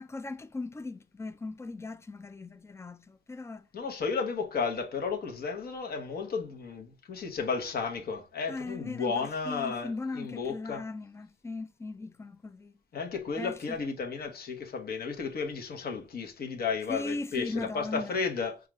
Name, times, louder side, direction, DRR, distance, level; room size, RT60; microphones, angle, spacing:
voice 1, 0.0-3.7 8.5-12.7 13.4-13.8 16.9-18.2, left 3 dB, 15° left, 0.4 m, -38 dB
voice 2, 3.7-10.8 12.9-18.6, left 5 dB, 50° left, 1.0 m, -33 dB
4.7 x 2.4 x 3.1 m
cardioid pair, 90°, 20 cm